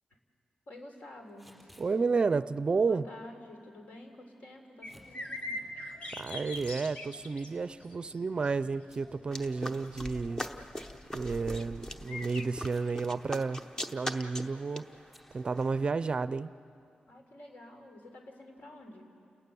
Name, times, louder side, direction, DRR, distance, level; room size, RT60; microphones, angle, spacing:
voice 1, 0.7-1.5 2.9-5.7 17.1-19.1, left 1 dB, 70° left, 3 dB, 3.7 m, -49 dB
Packing tape duct tape / Tearing, 1.3-1.9 4.8-5.1 6.2-6.9 7.2-7.3 8.0-8.6 8.9-9.0 9.4-9.5 11.5-11.7 12.6-13.0 13.3-13.4 13.7-14.0 15.1-15.3, equal, 5° left, 4.2 m, -58 dB
voice 2, 1.8-3.1 6.2-10.4 11.1-13.6 13.9-14.9 15.3-16.5, right 4 dB, 35° right, 15 dB, 0.4 m, -31 dB
sound 1, 4.8-12.4, left 1 dB, 45° left, 1.6 m, -44 dB
sound 2, 9.3-16.1, left 1 dB, 20° left, 0.9 m, -42 dB
29.5 x 19.0 x 7.0 m, 2.5 s
wide cardioid pair, 145°, 3 cm